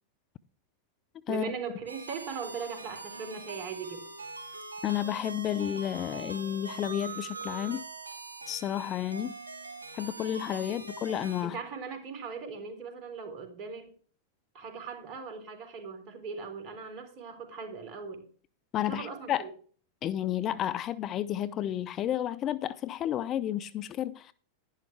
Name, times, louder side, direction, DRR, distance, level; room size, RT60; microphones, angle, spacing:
voice 1, 1.3-4.1 10.7-10.8 11.4-13.9 14.5-18.3 18.8-19.5, right 5 dB, 40° right, 3.8 m, -39 dB
sound 1, 1.9-11.4, right 3 dB, 80° right, 3.1 m, -43 dB
voice 2, 4.8-7.8 8.5-9.3 9.9-11.6 18.7-19.5 20.0-24.3, left 11 dB, 30° left, 0.5 m, -31 dB
11.0 x 11.0 x 3.4 m
figure-of-eight pair, 90°, 0 cm